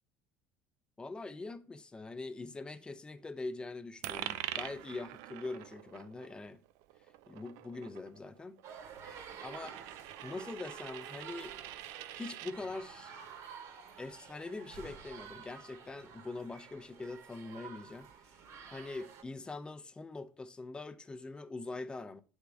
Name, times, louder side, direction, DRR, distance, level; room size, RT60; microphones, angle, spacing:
voice 1, 1.0-6.6 7.3-8.6 9.4-11.6 12.1-13.1 14.0-18.4 18.7-22.2, left 3 dB, 15° left, 0.5 m, -43 dB
Coin (dropping), 4.0-12.6, right 14 dB, 75° right, 0.3 m, -45 dB
sound 1, 8.6-19.2, right 7 dB, 55° right, 1.0 m, -51 dB
9.3 x 3.6 x 3.3 m
cardioid pair, 120°, 6 cm